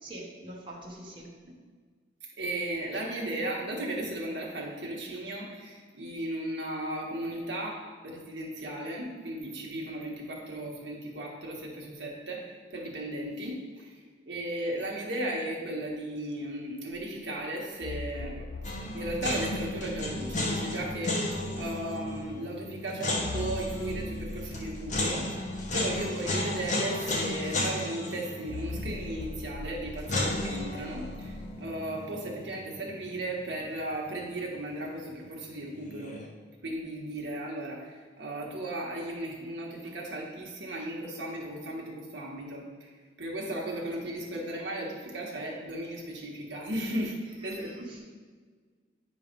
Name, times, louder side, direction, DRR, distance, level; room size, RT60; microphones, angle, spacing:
voice 1, 0.0-1.3 47.4-48.0, right 1 dB, 30° right, -4 dB, 1.1 m, -44 dB
voice 2, 2.4-18.5 18.9-21.2 21.5-36.1 36.6-42.9 43.2-48.0, right 1 dB, 70° right, -2 dB, 1.5 m, -36 dB
sound 1, 16.9-17.0 17.8-22.3 23.2-27.8 28.5-31.5, left 3 dB, 70° left, 0.4 m, -42 dB
sound 2, 18.6-33.6 33.9-34.0 35.7-36.2, left 1 dB, 40° left, 1.0 m, -34 dB
9.3 x 3.2 x 5.2 m, 1.5 s
head